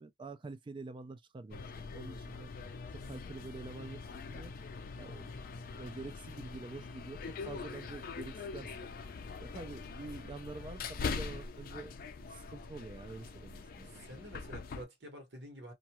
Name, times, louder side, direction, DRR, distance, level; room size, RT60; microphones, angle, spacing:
voice 1, 0.0-1.6 1.9-2.5 2.9-4.5 4.9-8.9 9.4-12.0 12.3-14.1, right 3 dB, 30° right, 0.4 m, -47 dB
sound 1, 1.5-14.8, left 4 dB, 55° left, 0.4 m, -43 dB
voice 2, 13.7-15.7, right 1 dB, 70° right, 1.2 m, -50 dB
2.5 x 2.2 x 2.9 m
head